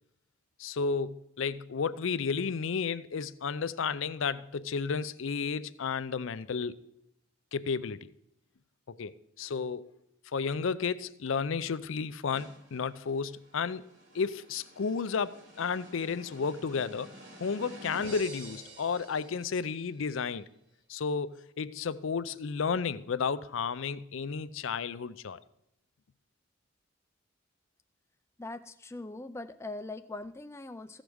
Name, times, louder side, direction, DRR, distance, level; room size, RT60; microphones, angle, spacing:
voice 1, 0.6-6.8 7.5-8.1 8.9-9.9 10.3-13.8 14.1-17.1 17.4-20.5 20.9-25.4, left 5 dB, 70° left, 0.5 m, -32 dB
sound 1, 12.3-19.9, right 1 dB, 60° right, 2.8 m, -50 dB
voice 2, 28.4-31.0, left 2 dB, 15° left, 0.3 m, -41 dB
15.0 x 5.1 x 6.3 m
head